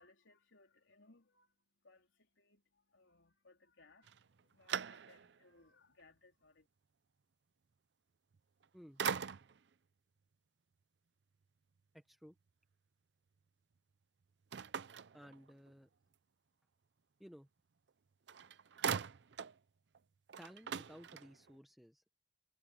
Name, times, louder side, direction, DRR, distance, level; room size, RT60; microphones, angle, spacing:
voice 1, 0.0-6.7, left 3 dB, 80° left, 3.9 m, -67 dB
sound 1, 4.0-5.5 6.0-6.1 8.3-8.7 9.0-9.7 14.5-15.8 17.9-18.0 18.3-19.6 19.9-20.0 20.3-21.6, right 7 dB, 60° right, 0.5 m, -41 dB
voice 2, 11.9-12.3 15.1-15.9 17.2-17.5 20.4-22.1, equal, ahead, 1.0 m, -57 dB
head